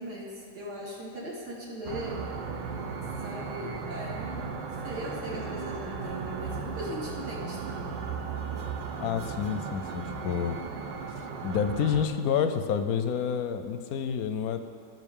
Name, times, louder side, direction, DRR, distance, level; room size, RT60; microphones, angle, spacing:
voice 1, 0.0-2.3 3.2-4.4 4.7-8.0, right 1 dB, 65° right, -5 dB, 2.7 m, -39 dB
sound 1, 1.8-12.0, right 5 dB, 90° right, 1.5 m, -36 dB
voice 2, 9.0-10.6 11.4-14.6, left 7 dB, 70° left, 9 dB, 0.9 m, -29 dB
17.5 x 6.2 x 3.7 m, 2.6 s
omnidirectional pair, 1.9 m